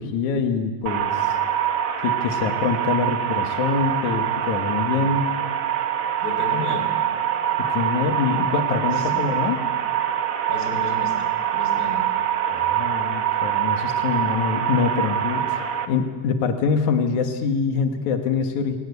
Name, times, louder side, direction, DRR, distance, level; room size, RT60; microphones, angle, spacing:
voice 1, 0.0-1.4 2.0-5.3 7.6-9.6 12.5-15.6 15.9-18.8, left 5 dB, 80° left, 6 dB, 2.9 m, -24 dB
sound 1, 0.9-15.9, right 10 dB, 90° right, 0.7 m, -24 dB
voice 2, 6.2-6.9 8.9-9.3 10.5-12.0, left 3 dB, 30° left, 4 dB, 4.1 m, -33 dB
25.0 x 18.5 x 8.2 m, 1.4 s
omnidirectional pair, 3.3 m